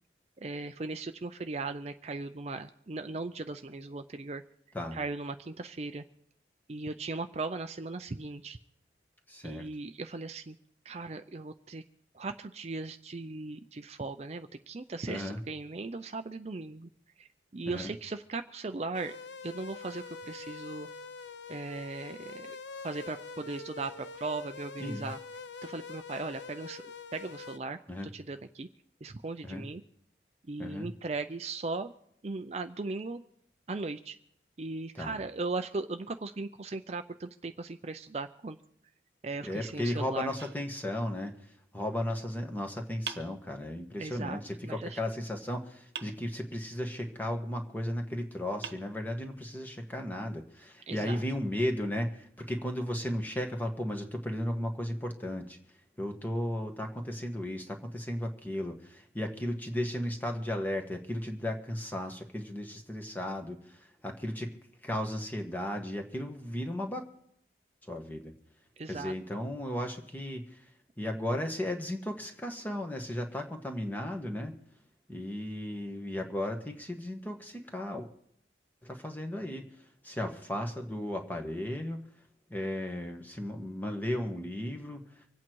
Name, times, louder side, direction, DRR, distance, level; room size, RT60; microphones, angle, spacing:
voice 1, 0.4-4.4 4.9-6.0 6.7-8.6 9.4-10.6 10.8-11.8 12.1-16.9 17.2-19.2 19.4-20.9 21.5-22.6 22.8-25.2 25.6-27.8 28.1-28.7 29.0-29.8 30.5-31.9 32.2-33.2 33.7-34.2 34.6-38.6 39.2-40.3 44.0-45.0 50.9-51.2 68.8-69.1, right 3 dB, 35° right, 8 dB, 0.5 m, -38 dB
voice 2, 9.3-9.7 15.1-15.4 17.6-17.9 24.8-25.1 27.9-28.1 29.4-29.6 30.6-30.9 34.9-35.2 39.4-55.6 56.0-64.5 64.8-67.0 67.9-68.3 68.9-70.7 71.0-74.5 75.1-78.1 78.8-79.7 80.0-82.0 82.5-85.0, left 1 dB, 10° left, 3 dB, 1.5 m, -35 dB
sound 1, 18.9-27.6, left 4 dB, 80° left, 0.8 m, -45 dB
sound 2, 40.4-41.4 43.1-44.1 46.0-46.9 48.0-48.1 48.6-49.6, right 7 dB, 65° right, 1.1 m, -45 dB
25.5 x 8.7 x 4.6 m, 0.69 s
head